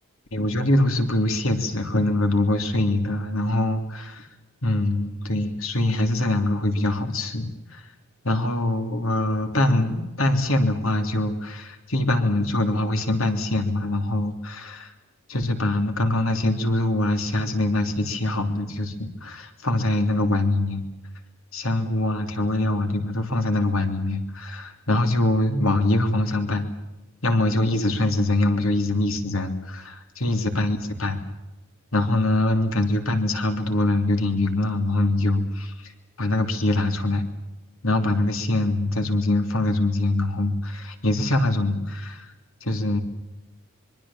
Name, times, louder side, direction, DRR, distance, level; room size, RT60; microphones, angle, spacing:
voice 1, 0.3-4.3 4.6-7.8 8.2-14.9 15.3-20.8 21.5-26.7 27.2-31.2 31.9-35.9 36.2-37.2 37.8-42.3 42.6-43.0, left 2 dB, 70° left, 7 dB, 3.2 m, -23 dB
25.0 x 23.5 x 7.4 m, 0.99 s
head